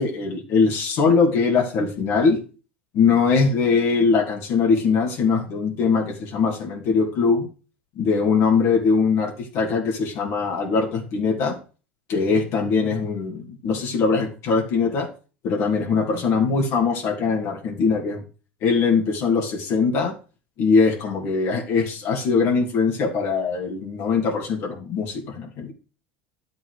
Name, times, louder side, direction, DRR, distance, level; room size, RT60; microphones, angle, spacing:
voice 1, 0.0-2.4 2.9-7.5 8.0-11.6 12.1-15.1 15.4-18.2 18.6-20.1 20.6-25.7, left 5 dB, 55° left, 1 dB, 3.0 m, -21 dB
11.5 x 8.2 x 5.0 m, 0.35 s
hypercardioid pair, 75°, 6 cm